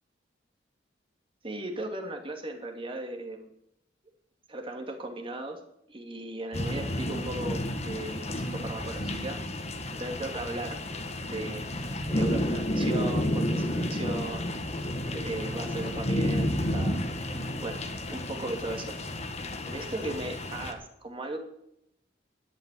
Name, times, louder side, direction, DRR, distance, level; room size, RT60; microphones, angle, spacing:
voice 1, 1.4-3.5 4.5-5.6 5.9-9.4 10.0-10.8 11.3-11.7 12.1-14.5 15.1-17.0 17.3-17.8 18.1-19.0 19.7-21.4, right 2 dB, 30° right, 2 dB, 2.6 m, -37 dB
sound 1, 6.5-20.7, left 1 dB, 35° left, 1.5 m, -31 dB
12.0 x 8.2 x 9.3 m, 0.77 s
head